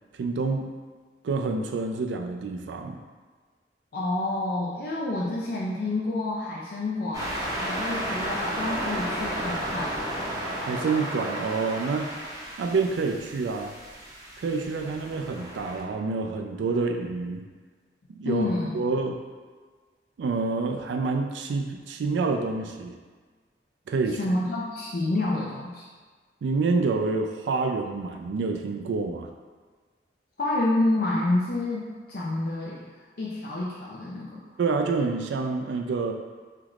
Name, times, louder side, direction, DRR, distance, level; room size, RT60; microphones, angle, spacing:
voice 1, 0.1-0.7 1.2-3.0 10.6-12.1 12.6-13.7 14.4-17.5 18.1-18.4 18.7-19.2 20.2-23.0 23.9-24.2 26.4-29.3 34.6-36.1, right 4 dB, 85° right, 4 dB, 0.3 m, -27 dB
voice 2, 3.9-9.9 18.2-18.8 24.2-25.8 30.4-32.9 33.2-34.4, left 2 dB, 55° left, -5 dB, 0.4 m, -28 dB
sound 1, 7.1-15.8, right 1 dB, 20° right, 0.6 m, -33 dB
3.3 x 3.0 x 2.4 m, 1.5 s
head